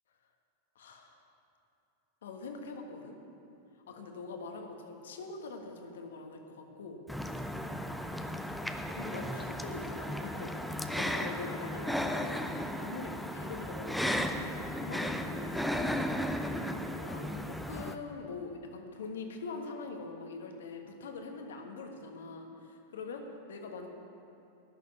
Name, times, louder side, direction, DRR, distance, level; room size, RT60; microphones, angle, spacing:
voice 1, 0.7-1.2 2.2-3.2 3.9-7.0 8.0-8.2 8.9-16.6 17.0-23.9, left 3 dB, 60° left, 3 dB, 1.4 m, -44 dB
sound 1, 7.1-18.0, equal, ahead, 0.6 m, -35 dB
11.5 x 6.7 x 9.3 m, 2.7 s
figure-of-eight pair, 90°, 0 cm